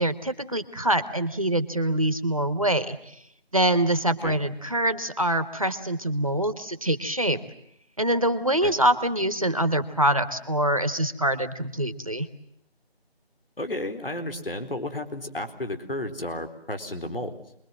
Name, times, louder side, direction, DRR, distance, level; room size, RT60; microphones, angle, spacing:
voice 1, 0.0-3.1 3.5-7.4 8.0-12.3, right 1 dB, 35° right, 10 dB, 1.3 m, -24 dB
voice 2, 13.6-17.4, left 1 dB, 60° left, 7 dB, 4.2 m, -32 dB
28.0 x 22.0 x 7.6 m, 0.76 s
figure-of-eight pair, 180°, 31 cm